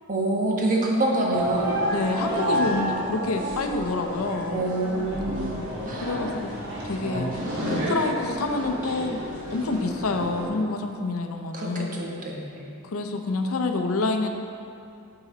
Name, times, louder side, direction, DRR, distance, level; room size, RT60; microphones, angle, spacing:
voice 1, 0.1-1.8 4.5-6.1 7.7-7.9 11.5-12.7, right 2 dB, 40° right, -2 dB, 1.1 m, -27 dB
sound 1, 1.3-10.5, equal, 65° right, 1.8 m, -30 dB
voice 2, 1.9-4.6 5.9-6.5 6.8-7.3 7.7-9.2 9.5-12.0 12.8-14.3, left 3 dB, 80° left, 5 dB, 0.6 m, -27 dB
11.0 x 3.9 x 4.1 m, 2.6 s
head